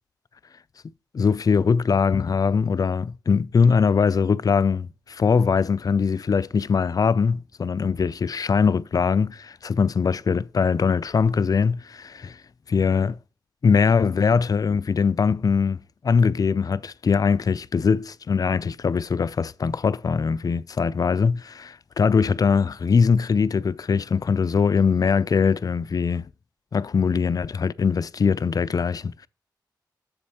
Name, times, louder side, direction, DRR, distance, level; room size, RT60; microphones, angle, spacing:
voice 1, 1.1-12.4 12.7-13.2 13.6-26.3 26.7-29.3, left 5 dB, 50° left, 0.4 m, -22 dB
7.2 x 4.2 x 5.5 m
cardioid pair, 45°, 8 cm